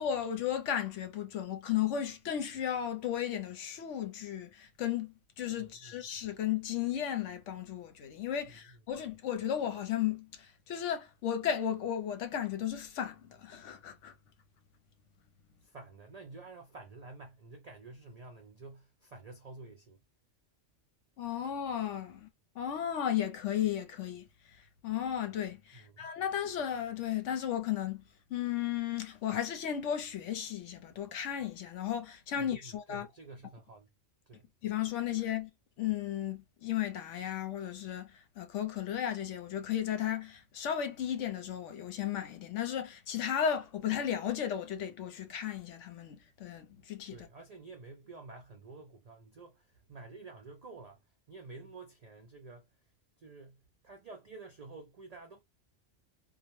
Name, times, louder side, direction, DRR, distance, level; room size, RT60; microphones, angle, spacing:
voice 1, 0.0-14.1 21.2-22.3 22.5-24.6 24.8-28.0 28.3-33.1 34.6-35.5 35.8-47.3, left 10 dB, 75° left, 0.9 m, -34 dB
voice 2, 5.6-5.9 15.6-20.0 25.7-26.2 32.4-33.9 34.3-34.4 47.1-51.0 51.3-52.7 53.2-55.4, right 3 dB, 65° right, 0.4 m, -50 dB
2.3 x 2.0 x 3.0 m
omnidirectional pair, 1.3 m